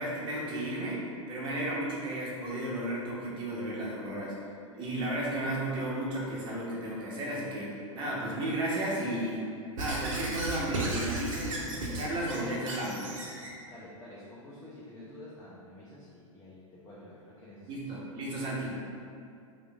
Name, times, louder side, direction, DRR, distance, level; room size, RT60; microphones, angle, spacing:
voice 1, 0.0-4.5 4.7-9.4 9.7-13.2 17.7-18.7, right 1 dB, 25° right, -5 dB, 0.6 m, -34 dB
Squeak / Writing, 9.8-13.5, right 2 dB, 70° right, 0.5 m, -35 dB
voice 2, 13.7-17.8, left 1 dB, 15° left, -7 dB, 0.3 m, -49 dB
3.0 x 2.0 x 2.2 m, 2.4 s
figure-of-eight pair, 100°, 18 cm